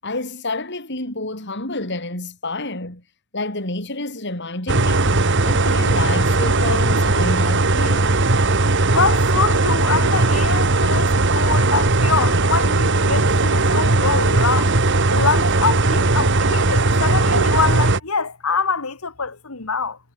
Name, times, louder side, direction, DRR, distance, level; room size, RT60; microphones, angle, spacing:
voice 1, 0.0-3.0 3.3-5.1 5.4-8.1, left 2 dB, 55° left, 7.5 m, -29 dB
sound 1, 4.7-18.0, right 2 dB, 60° right, 2.1 m, -18 dB
voice 2, 8.9-14.7 15.1-20.0, left 5 dB, 85° left, 2.1 m, -24 dB
head